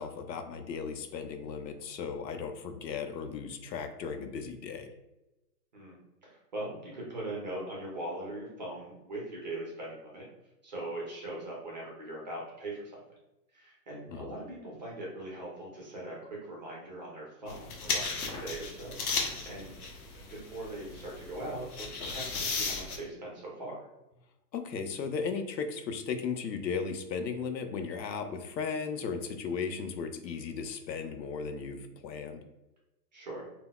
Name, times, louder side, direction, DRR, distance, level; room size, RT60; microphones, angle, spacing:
voice 1, 0.0-4.9 14.1-14.3 24.5-32.4, left 5 dB, 90° left, 7 dB, 0.6 m, -36 dB
voice 2, 5.7-10.3 10.6-13.0 13.5-19.7 20.1-23.8 33.1-33.5, right 1 dB, 30° right, -3 dB, 0.5 m, -41 dB
sound 1, 17.5-23.0, left 4 dB, 60° left, 0.8 m, -35 dB
3.7 x 2.1 x 2.2 m, 0.95 s
hypercardioid pair, 150°, 49 cm